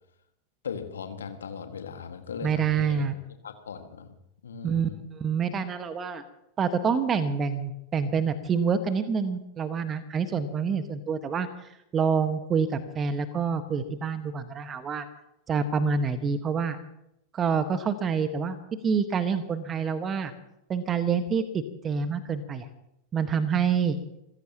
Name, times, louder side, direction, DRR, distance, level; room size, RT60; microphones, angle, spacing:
voice 1, 0.6-3.1 3.4-4.2 4.4-5.0, left 6 dB, 65° left, 7 dB, 1.9 m, -38 dB
voice 2, 2.4-3.1 4.6-6.2 6.6-11.5 11.9-15.0 15.5-16.8 17.3-18.6 18.8-20.3 20.7-22.6 23.1-24.0, right 6 dB, 25° right, 10 dB, 1.5 m, -27 dB
28.0 x 15.5 x 3.0 m, 0.79 s
figure-of-eight pair, 90°, 0 cm